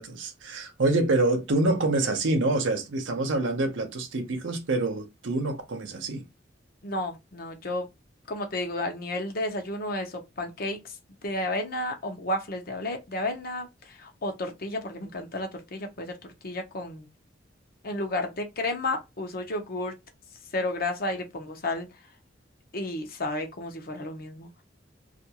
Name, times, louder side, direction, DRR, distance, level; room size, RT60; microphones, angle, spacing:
voice 1, 0.0-6.2, right 2 dB, 90° right, 0.7 m, -26 dB
voice 2, 6.8-7.9 8.3-10.8 11.2-16.1 16.4-17.1 17.8-19.9 20.5-21.9 22.7-24.6, left 1 dB, 50° left, 0.7 m, -32 dB
2.4 x 2.3 x 2.8 m
head